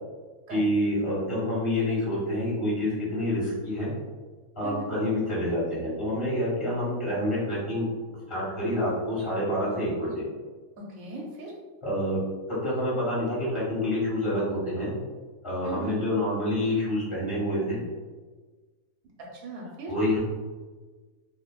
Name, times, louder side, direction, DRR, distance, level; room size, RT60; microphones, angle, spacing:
voice 1, 0.5-3.9 4.5-7.8 8.3-10.2 11.8-12.2 12.5-14.9 15.4-17.9 19.9-20.2, left 1 dB, 20° left, -9 dB, 1.3 m, -27 dB
voice 2, 10.8-11.5 15.6-16.0 19.3-19.9, right 2 dB, 75° right, -2 dB, 1.0 m, -38 dB
2.7 x 2.4 x 2.2 m, 1.4 s
omnidirectional pair, 1.7 m